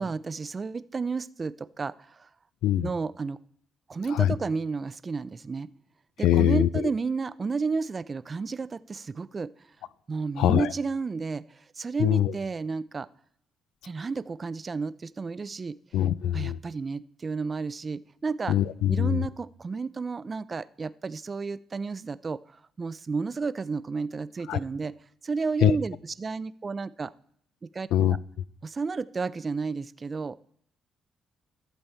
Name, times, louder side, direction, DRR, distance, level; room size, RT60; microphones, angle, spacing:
voice 1, 0.0-2.3 2.8-3.4 3.9-5.7 6.2-9.5 10.1-13.1 13.8-15.8 16.3-18.6 18.9-24.9 25.2-27.1 27.6-27.9 28.6-30.4, right 4 dB, 35° right, 17 dB, 0.3 m, -32 dB
voice 2, 6.2-6.8 10.4-10.7 12.0-12.3 15.9-16.6 18.5-19.3 24.5-24.6 25.6-25.8 27.9-28.2, left 11 dB, 90° left, 19 dB, 0.3 m, -23 dB
12.0 x 7.0 x 4.4 m, 0.65 s
cardioid pair, 90°, 0 cm